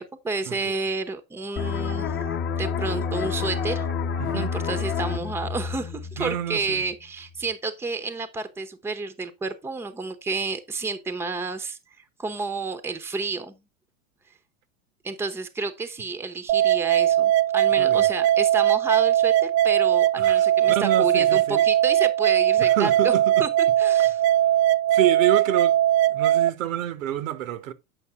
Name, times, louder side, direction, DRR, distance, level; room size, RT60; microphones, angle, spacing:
voice 1, 0.0-2.1 2.6-3.8 4.3-11.8 12.2-13.6 15.0-23.1 23.4-23.5 23.8-24.2, right 3 dB, 5° right, 0.7 m, -30 dB
sound 1, 1.6-6.9 7.3-7.5, left 6 dB, 30° left, 0.9 m, -29 dB
voice 2, 4.2-4.5 6.2-6.8 17.8-18.1 20.2-21.6 22.6-23.4 24.9-25.8 26.1-27.7, right 12 dB, 80° right, 1.1 m, -28 dB
sound 2, 16.5-26.5, right 12 dB, 55° right, 0.6 m, -20 dB
8.0 x 5.4 x 3.5 m
hypercardioid pair, 110°, 40 cm